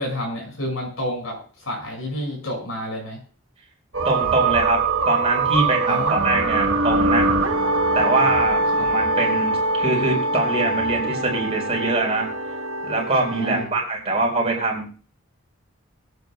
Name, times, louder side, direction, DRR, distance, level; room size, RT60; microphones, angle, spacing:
voice 1, 0.0-3.2 5.9-6.3 8.8-8.9 13.3-13.7, equal, 80° left, 1 dB, 5.7 m, -29 dB
sound 1, 3.9-13.6, right 3 dB, 70° right, 1.2 m, -23 dB
voice 2, 4.0-7.3 7.9-12.3 12.8-14.9, right 2 dB, 30° right, -1 dB, 4.4 m, -23 dB
25.5 x 9.3 x 2.3 m, 0.39 s
head